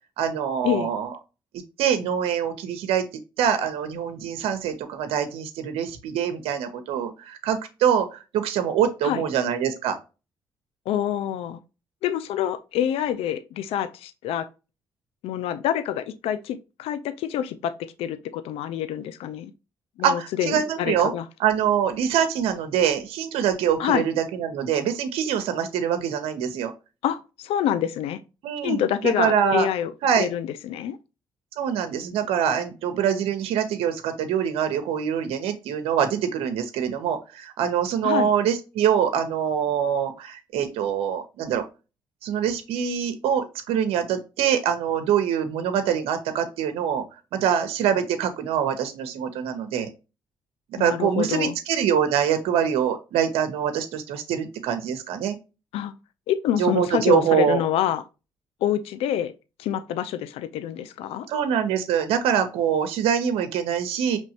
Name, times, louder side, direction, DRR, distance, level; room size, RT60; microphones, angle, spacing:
voice 1, 0.2-1.1 1.8-3.0 3.4-10.0 20.0-21.1 21.4-26.7 28.4-29.7 30.0-30.3 31.6-41.6 42.2-47.0 47.3-49.9 50.8-55.4 56.6-57.6 61.3-64.2, right 8 dB, 85° right, 0.7 m, -24 dB
voice 2, 10.9-11.6 12.0-14.5 15.2-19.5 20.0-21.2 23.8-24.0 27.0-28.2 28.6-31.0 38.0-38.3 50.8-51.6 55.7-55.9 56.3-58.0 58.6-59.3 59.6-61.3, left 10 dB, 85° left, 0.4 m, -26 dB
5.4 x 3.0 x 2.8 m
supercardioid pair, 70°, 10 cm